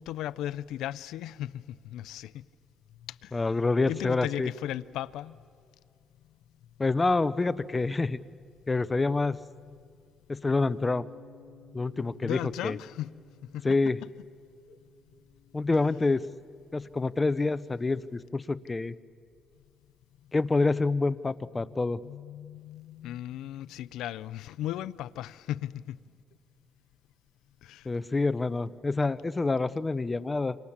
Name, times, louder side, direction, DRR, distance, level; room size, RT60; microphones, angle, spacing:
voice 1, 0.0-2.4 3.0-3.4 3.9-5.4 12.2-13.1 13.4-13.8 14.7-14.8 22.0-26.0 27.6-27.9, left 12 dB, 85° left, 0.6 m, -36 dB
voice 2, 3.3-4.5 6.8-8.2 8.7-9.4 10.3-11.1 11.7-12.8 13.6-14.0 15.5-16.2 16.7-18.9 20.3-22.0 27.8-30.6, left 3 dB, 25° left, 0.7 m, -27 dB
Bass guitar, 10.7-16.9, left 4 dB, 70° left, 2.0 m, -56 dB
28.5 x 25.5 x 7.3 m
cardioid pair, 90°, 0 cm